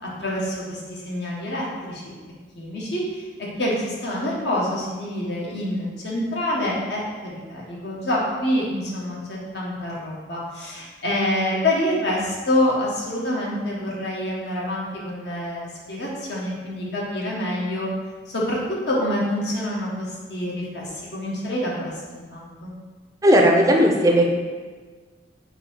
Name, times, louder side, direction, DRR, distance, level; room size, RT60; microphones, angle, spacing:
voice 1, 0.0-2.0 2.6-17.9 18.3-18.6 18.9-22.7, left 1 dB, 70° left, -4 dB, 1.1 m, -27 dB
voice 2, 23.2-24.2, equal, 20° right, 1 dB, 0.5 m, -16 dB
4.0 x 2.7 x 4.4 m, 1.4 s
head